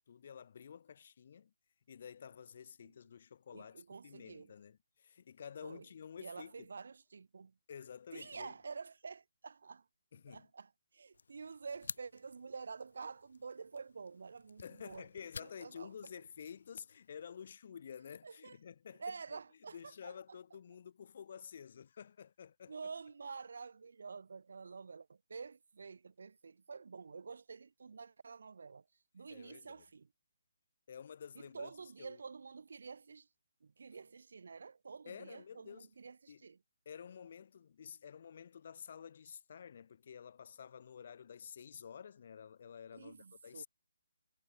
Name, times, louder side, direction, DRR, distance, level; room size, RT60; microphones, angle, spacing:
voice 1, 0.0-1.5 1.9-6.7 7.7-8.5 10.1-10.5 14.6-19.4 19.7-22.7 29.3-29.9 30.9-31.7 32.0-32.2 35.1-35.9 36.3-36.4 36.8-43.7, left 7 dB, 50° left, 4.6 m, -51 dB
voice 2, 3.5-4.5 5.6-5.8 6.2-7.5 8.1-9.8 10.3-15.0 15.4-15.9 18.2-18.6 19.0-20.1 22.7-28.8 29.1-30.1 31.5-33.3 33.6-36.6 42.9-43.7, right 5 dB, 70° right, 2.8 m, -49 dB
sound 1, 11.1-17.6, left 4 dB, 70° left, 2.9 m, -53 dB
hypercardioid pair, 160°, 0 cm